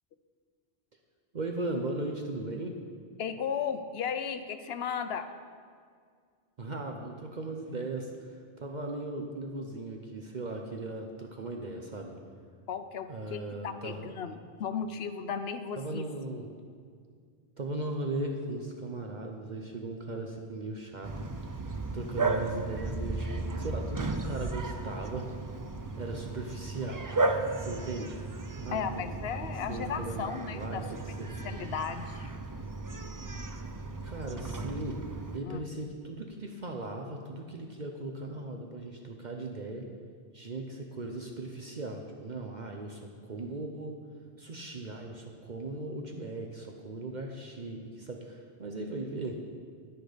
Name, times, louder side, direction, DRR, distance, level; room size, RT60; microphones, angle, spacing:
voice 1, 1.3-2.8 6.6-12.2 13.1-14.1 15.8-16.5 17.6-21.3 21.9-25.3 26.0-28.2 28.6-29.1 29.7-31.3 34.0-35.0 35.3-39.9 40.3-43.9 44.4-49.4, right 2 dB, 50° right, 2 dB, 0.9 m, -38 dB
voice 2, 3.2-5.3 12.7-16.0 28.7-30.8 31.4-32.3 35.4-35.6, left 7 dB, 80° left, 9 dB, 0.9 m, -35 dB
Bark, 21.0-35.4, right 2 dB, 25° right, 0.4 m, -35 dB
10.5 x 10.0 x 5.1 m, 2.1 s
omnidirectional pair, 1.0 m